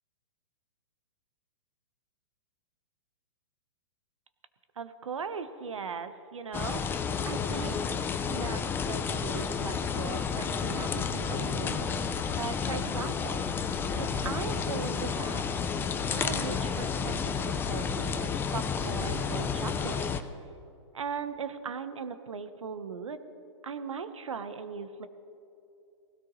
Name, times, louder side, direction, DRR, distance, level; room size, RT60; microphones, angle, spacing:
voice 1, 4.8-6.8 7.2-7.8 8.3-12.0 12.3-13.4 14.0-15.6 16.1-20.2 20.9-23.2 23.6-25.1, right 6 dB, 90° right, 10 dB, 1.2 m, -38 dB
sound 1, 6.5-20.2, left 6 dB, 15° left, 0.6 m, -31 dB
19.5 x 17.0 x 3.2 m, 2.7 s
hypercardioid pair, 135°, 16 cm